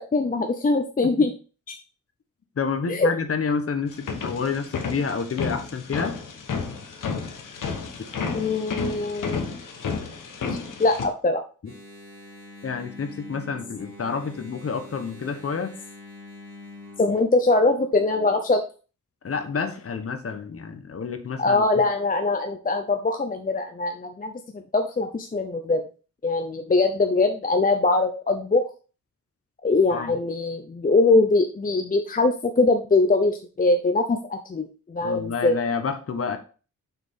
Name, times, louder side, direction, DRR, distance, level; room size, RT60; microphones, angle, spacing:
voice 1, 0.1-1.3 1.7-1.8 2.9-3.1 8.3-9.5 10.5-11.4 17.0-18.6 21.4-25.8 26.2-28.7 29.6-35.6, left 3 dB, 25° left, 5 dB, 0.7 m, -22 dB
voice 2, 2.6-6.1 12.6-15.7 19.2-21.8 29.9-30.1 35.0-36.4, left 5 dB, 45° left, 8 dB, 1.1 m, -29 dB
sound 1, 3.9-11.1, left 5 dB, 75° left, 1.3 m, -32 dB
Engine, 11.6-17.2, left 2 dB, 40° right, 3.7 m, -44 dB
6.8 x 6.0 x 3.7 m, 0.36 s
wide cardioid pair, 150°, 32 cm